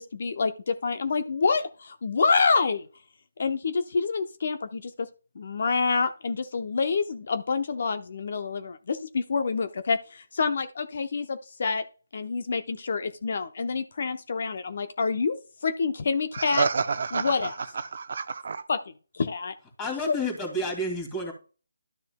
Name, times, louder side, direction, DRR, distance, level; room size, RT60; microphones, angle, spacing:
voice 1, 0.0-2.9 3.4-4.9 5.4-11.8 12.1-15.4 15.6-16.7 17.1-17.5 18.7-18.8 19.1-19.5 20.1-20.2, left 4 dB, 50° left, 0.8 m, -27 dB
voice 2, 16.3-18.6, right 5 dB, 55° right, 0.7 m, -29 dB
voice 3, 19.8-21.3, left 1 dB, 15° left, 2.6 m, -30 dB
12.0 x 6.7 x 2.3 m
figure-of-eight pair, 150°, 0 cm